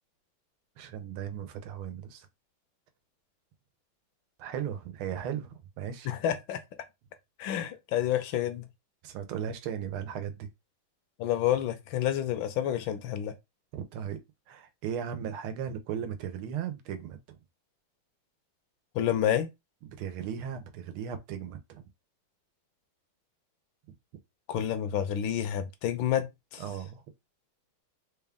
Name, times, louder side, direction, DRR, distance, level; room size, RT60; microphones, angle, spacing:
voice 1, 0.8-2.3 4.4-6.1 9.0-10.5 13.7-14.2 14.5-17.4 19.8-21.8 26.6-27.0, right 8 dB, 90° right, 1.6 m, -37 dB
voice 2, 6.1-6.6 7.4-8.7 11.2-13.3 18.9-19.5 24.5-26.6, left 10 dB, 75° left, 1.3 m, -29 dB
4.0 x 2.3 x 3.5 m
omnidirectional pair, 2.3 m